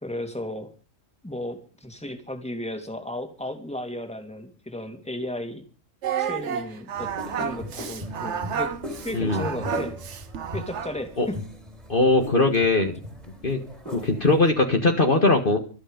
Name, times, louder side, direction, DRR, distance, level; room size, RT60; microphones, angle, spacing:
voice 1, 0.0-0.7 1.2-5.6 6.2-8.7 9.0-10.0 10.5-11.4 13.8-14.1, left 1 dB, 5° left, 5 dB, 2.6 m, -34 dB
Singing, 6.0-11.1, right 8 dB, 65° right, 1.2 m, -31 dB
sound 1, 7.0-14.5, equal, 30° right, 3.8 m, -38 dB
voice 2, 9.1-9.4 11.2-11.3 11.9-13.0 13.4-13.6 13.9-15.6, left 2 dB, 40° left, 4 dB, 1.9 m, -20 dB
25.5 x 8.8 x 5.2 m, 0.38 s
omnidirectional pair, 1.3 m